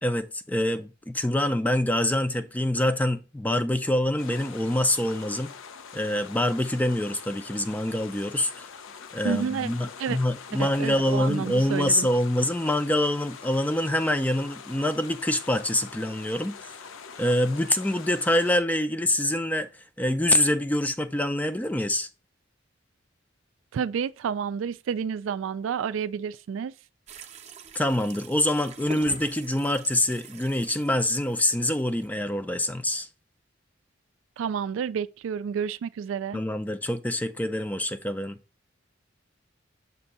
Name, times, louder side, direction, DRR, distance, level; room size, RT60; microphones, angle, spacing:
voice 1, 0.0-5.5 5.9-8.7 9.1-16.7 17.2-19.7 20.0-22.1 27.7-33.1 36.3-38.4, left 1 dB, 10° left, 0.3 m, -25 dB
sound 1, 4.2-18.6, left 6 dB, 90° left, 0.5 m, -44 dB
voice 2, 9.2-9.7 10.0-10.2 10.6-12.1 23.7-26.7 34.4-36.4, right 7 dB, 90° right, 0.3 m, -30 dB
sound 2, 27.1-32.1, right 4 dB, 35° right, 0.6 m, -44 dB
6.7 x 2.7 x 5.3 m
head